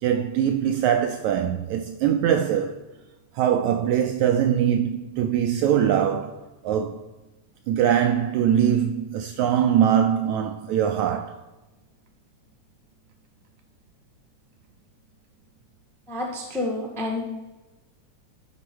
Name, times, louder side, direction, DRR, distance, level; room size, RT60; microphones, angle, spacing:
voice 1, 0.0-2.8 3.3-6.4 6.6-7.1 7.7-11.4, right 9 dB, 80° right, 1.7 m, -22 dB
voice 2, 16.1-17.2, left 2 dB, ahead, 0.5 m, -29 dB
11.0 x 4.4 x 6.1 m
omnidirectional pair, 3.7 m